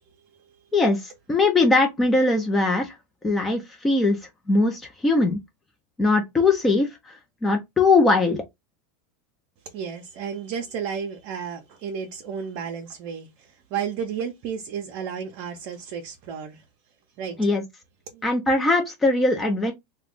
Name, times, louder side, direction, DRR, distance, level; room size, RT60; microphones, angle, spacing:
voice 1, 0.7-3.0 3.2-4.2 4.5-5.4 6.0-8.4 17.4-17.6 18.2-19.7, left 3 dB, 15° left, 0.6 m, -21 dB
voice 2, 9.6-16.6 17.2-17.5 18.1-18.2, right 7 dB, 55° right, 0.6 m, -33 dB
2.3 x 2.2 x 3.6 m
hypercardioid pair, 105°, 0 cm